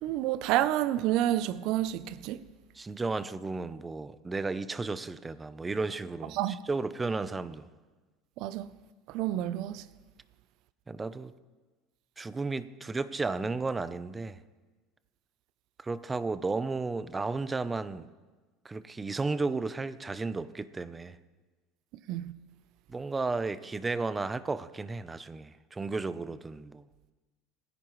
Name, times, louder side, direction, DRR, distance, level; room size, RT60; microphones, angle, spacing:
voice 1, 0.0-2.4 6.3-6.6 8.4-8.7 9.1-9.8 22.1-22.3, right 13 dB, 60° right, 0.5 m, -29 dB
voice 2, 2.8-7.7 10.9-11.3 12.2-14.4 15.8-18.1 18.6-21.2 22.9-26.8, right 3 dB, 15° right, 0.6 m, -33 dB
27.0 x 10.5 x 3.2 m
supercardioid pair, 120°, 0 cm